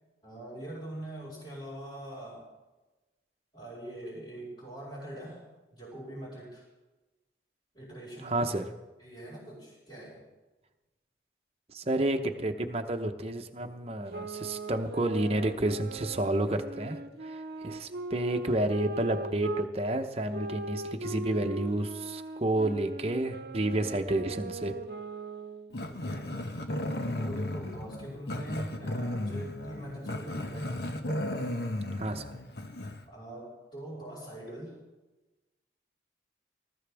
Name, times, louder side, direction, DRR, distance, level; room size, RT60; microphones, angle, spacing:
voice 1, 0.2-2.4 3.5-5.5 5.7-6.6 7.7-8.6 9.0-10.2 25.9-26.3 27.2-30.8 33.1-34.8, right 1 dB, 30° left, -9 dB, 5.1 m, -43 dB
voice 2, 8.2-8.7 11.7-24.8 31.9-32.3, right 1 dB, 35° right, 6 dB, 0.9 m, -30 dB
sound 1, 14.1-19.7 20.3-25.8, right 2 dB, 65° right, 0.9 m, -40 dB
Growling, 25.7-33.0, left 1 dB, 65° left, 1.2 m, -35 dB
19.5 x 14.0 x 3.5 m, 1.1 s
head